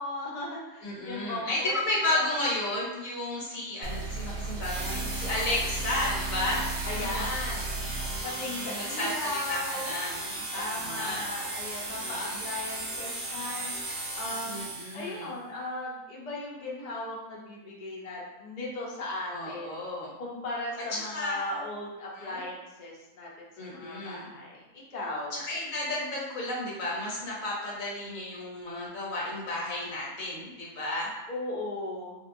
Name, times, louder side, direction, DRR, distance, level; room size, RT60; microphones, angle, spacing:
voice 1, 0.0-1.8 2.1-2.3 6.8-7.8 8.2-9.9 10.5-13.7 14.1-14.6 14.9-19.8 20.2-25.4 31.3-32.2, left 2 dB, 45° left, -3 dB, 0.6 m, -37 dB
voice 2, 0.8-6.6 7.0-7.3 8.5-11.2 11.8-12.4 14.5-15.3 19.3-20.1 20.9-21.7 22.1-22.4 23.6-24.3 25.3-31.1, left 1 dB, 80° left, -4 dB, 1.3 m, -33 dB
sound 1, 3.8-8.2, right 3 dB, 65° right, 0.9 m, -35 dB
sound 2, 4.6-15.2, right 2 dB, 35° right, 0.9 m, -36 dB
3.3 x 2.7 x 2.6 m, 1.0 s
omnidirectional pair, 1.4 m